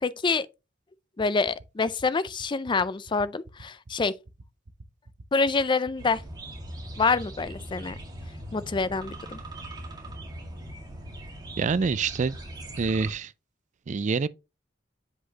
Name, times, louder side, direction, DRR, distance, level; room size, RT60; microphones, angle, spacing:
voice 1, 0.0-0.5 1.2-4.1 5.3-6.2 7.0-7.9 8.5-9.4, left 4 dB, 25° left, 0.4 m, -26 dB
sound 1, 1.2-7.2, right 2 dB, 60° right, 0.8 m, -47 dB
sound 2, 6.0-13.1, right 1 dB, 20° right, 2.0 m, -40 dB
voice 2, 11.6-12.4 12.8-13.3 13.9-14.3, right 5 dB, 40° right, 0.4 m, -26 dB
8.1 x 5.0 x 2.9 m
head